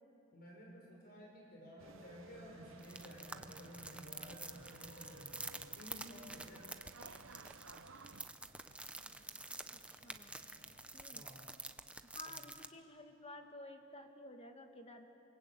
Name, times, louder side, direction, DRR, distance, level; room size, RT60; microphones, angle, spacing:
voice 1, 0.3-6.7 11.1-11.5 12.2-12.4, equal, 50° left, -1 dB, 5.8 m, -54 dB
sound 1, 1.8-8.3, right 4 dB, 85° right, 0.9 m, -57 dB
sound 2, 2.8-12.7, right 2 dB, 5° right, 0.8 m, -49 dB
sound 3, 3.3-10.8, right 1 dB, 65° right, 5.5 m, -65 dB
voice 2, 9.7-10.3 10.9-11.2 12.1-15.1, left 1 dB, 30° left, 5 dB, 2.0 m, -53 dB
28.5 x 24.0 x 8.6 m, 2.9 s
head